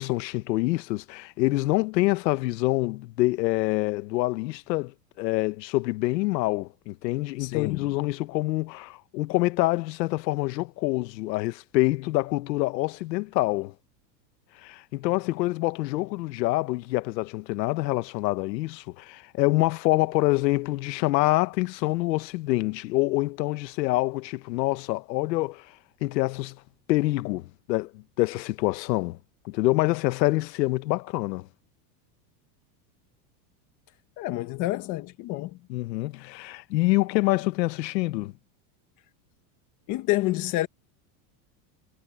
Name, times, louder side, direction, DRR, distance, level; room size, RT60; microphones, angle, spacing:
voice 1, 0.0-13.7 14.6-25.7 26.0-26.6 26.9-29.2 29.4-31.5 35.7-38.3, left 19 dB, 85° left, 1.3 m, -26 dB
voice 2, 7.4-7.9 34.2-35.6 39.9-40.7, left 17 dB, 35° left, 1.5 m, -28 dB
supercardioid pair, 175°, 50 cm